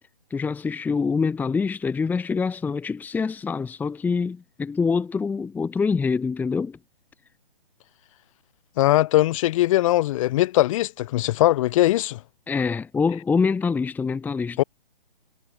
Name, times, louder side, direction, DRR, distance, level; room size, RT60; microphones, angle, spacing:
voice 1, 0.3-6.8 12.5-14.6, left 5 dB, 5° left, 1.3 m, -25 dB
voice 2, 8.8-12.2 14.6-14.7, left 15 dB, 35° left, 1.8 m, -20 dB
hypercardioid pair, 140°, 29 cm